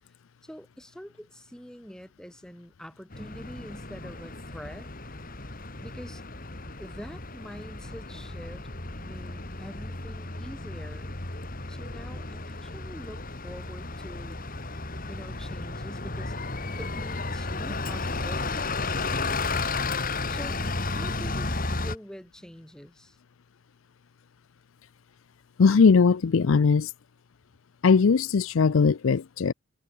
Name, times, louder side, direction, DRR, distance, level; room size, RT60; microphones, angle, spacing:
voice 1, 0.4-4.9 5.8-6.2 6.8-8.7 9.0-11.1 11.7-14.5 15.1-16.3 16.7-19.0 20.3-23.2, equal, 5° left, 4.9 m, -45 dB
Bus, 3.1-22.0, left 3 dB, 40° left, 2.4 m, -33 dB
voice 2, 25.6-26.9 27.8-29.5, left 5 dB, 65° left, 0.5 m, -20 dB
head